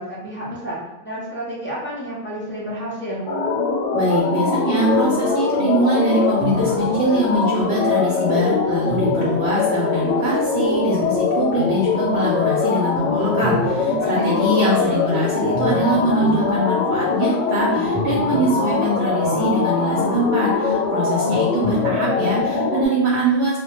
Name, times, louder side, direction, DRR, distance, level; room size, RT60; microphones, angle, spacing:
voice 1, 0.0-3.2 14.0-14.8, equal, 20° left, -8 dB, 0.3 m, -31 dB
sound 1, 3.3-22.9, left 4 dB, 90° left, 0.9 m, -21 dB
voice 2, 3.9-23.6, right 1 dB, 70° right, -3 dB, 0.8 m, -22 dB
2.1 x 2.1 x 2.8 m, 1.1 s
omnidirectional pair, 1.2 m